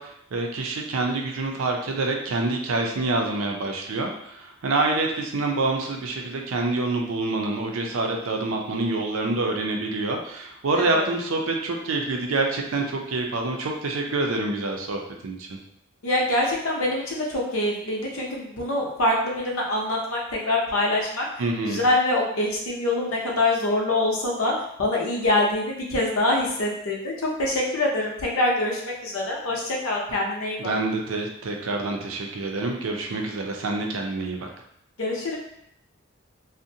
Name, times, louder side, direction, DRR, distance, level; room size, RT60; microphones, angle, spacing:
voice 1, 0.0-15.6 21.4-21.8 30.6-34.5, right 2 dB, 75° right, 2 dB, 0.5 m, -27 dB
voice 2, 10.8-11.1 16.0-20.2 20.5-21.2 21.6-24.5 24.8-30.7 35.0-35.4, left 2 dB, 75° left, -2 dB, 0.7 m, -25 dB
2.6 x 2.1 x 2.7 m, 0.73 s
head